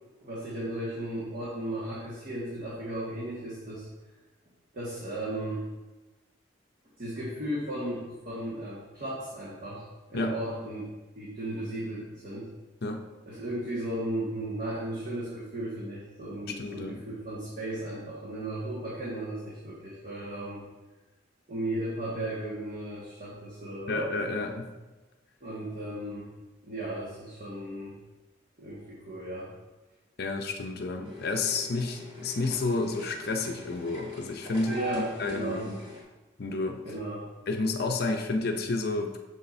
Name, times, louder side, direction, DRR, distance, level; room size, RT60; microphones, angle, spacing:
voice 1, 0.1-3.9 4.7-5.6 7.0-10.9 11.1-12.5 13.3-20.6 21.5-24.1 25.4-26.3 26.6-28.0 28.6-29.5 34.6-35.7 36.8-37.3, right 1 dB, 45° right, -8 dB, 1.6 m, -35 dB
voice 2, 16.5-17.0 23.9-24.7 30.2-35.7 36.4-36.8 37.5-39.2, left 3 dB, 55° left, 4 dB, 0.5 m, -30 dB
sound 1, 31.0-36.0, equal, 25° right, 2.0 m, -42 dB
7.1 x 6.8 x 2.6 m, 1.1 s
head